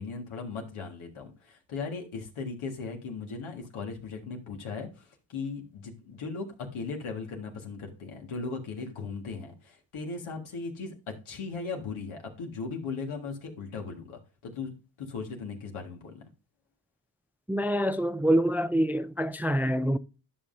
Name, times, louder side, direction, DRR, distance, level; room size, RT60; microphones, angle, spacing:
voice 1, 0.0-16.2, left 4 dB, 90° left, 1.7 m, -38 dB
voice 2, 17.5-20.0, right 1 dB, 5° right, 0.3 m, -26 dB
11.0 x 5.6 x 2.6 m
cardioid pair, 50°, 48 cm